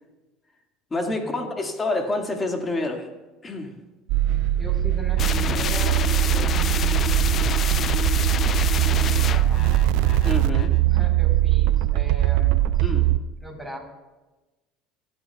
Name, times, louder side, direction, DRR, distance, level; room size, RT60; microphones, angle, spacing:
voice 1, 0.9-3.1 3.4-3.7 10.2-10.7 12.8-13.1, left 2 dB, 25° left, 3 dB, 2.0 m, -27 dB
sound 1, 4.1-13.2, right 14 dB, 70° right, 0.4 m, -21 dB
voice 2, 4.6-8.3 9.0-9.8 10.9-12.9 13.4-13.8, right 1 dB, ahead, -2 dB, 3.9 m, -39 dB
sound 2, 5.2-10.8, left 8 dB, 45° left, 0.4 m, -28 dB
25.5 x 8.8 x 2.3 m, 1.2 s
hypercardioid pair, 75°, 0 cm